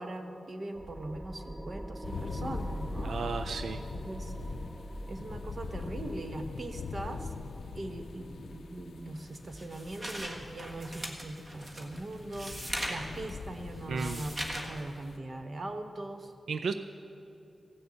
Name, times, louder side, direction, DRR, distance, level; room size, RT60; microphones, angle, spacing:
voice 1, 0.0-3.1 3.9-4.3 5.1-7.3 7.7-12.6 12.9-16.3, right 1 dB, 45° right, 6 dB, 1.0 m, -40 dB
sound 1, 0.7-11.8, right 1 dB, 5° right, 0.3 m, -43 dB
sound 2, 2.0-15.2, left 5 dB, 80° left, 0.4 m, -43 dB
voice 2, 3.0-3.8 13.9-14.3 16.5-16.7, right 5 dB, 90° right, 9 dB, 0.4 m, -33 dB
sound 3, 9.2-14.8, equal, 25° right, 1.5 m, -40 dB
15.5 x 6.7 x 8.5 m, 2.7 s
wide cardioid pair, 115°, 0 cm